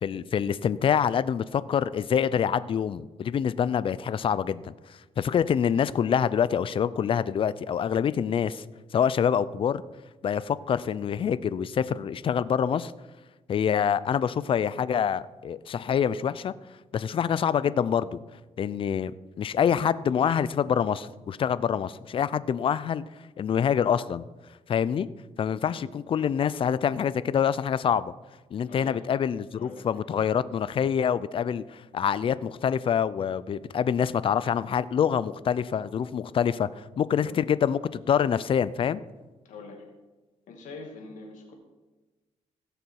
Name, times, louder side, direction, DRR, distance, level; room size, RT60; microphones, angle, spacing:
voice 1, 0.0-4.7 5.2-8.6 8.9-9.8 10.2-12.9 13.5-16.5 16.9-18.2 18.6-19.1 19.4-23.0 23.4-24.2 24.7-25.1 25.4-28.1 28.5-39.0, left 8 dB, 45° left, 17 dB, 0.4 m, -26 dB
voice 2, 28.6-29.2 29.5-30.0 37.2-37.4 39.4-39.9 40.5-41.5, left 3 dB, 85° left, 1 dB, 2.5 m, -44 dB
16.5 x 6.7 x 4.7 m, 1.2 s
cardioid pair, 115°, 13 cm